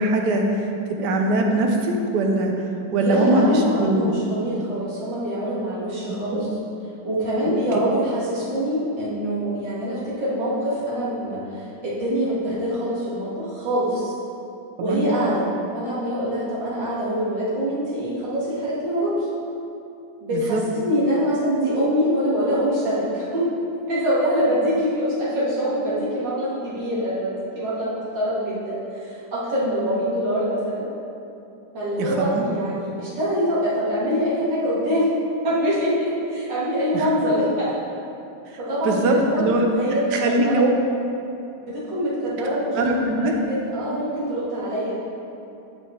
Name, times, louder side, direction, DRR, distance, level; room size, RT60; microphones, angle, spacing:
voice 1, 0.0-2.5 2.9-4.1 6.3-6.4 14.8-15.0 20.3-20.6 32.0-32.4 36.9-37.1 38.8-39.6 40.1-40.7 42.8-43.3, right 2 dB, 70° right, 2 dB, 1.4 m, -21 dB
voice 2, 3.0-6.5 7.0-14.1 14.8-15.4 15.7-19.1 20.2-23.4 23.9-30.8 31.7-35.1 35.4-37.7 38.6-40.7 41.6-45.1, equal, 85° right, -9 dB, 2.8 m, -24 dB
10.5 x 5.5 x 3.3 m, 2.7 s
omnidirectional pair, 1.9 m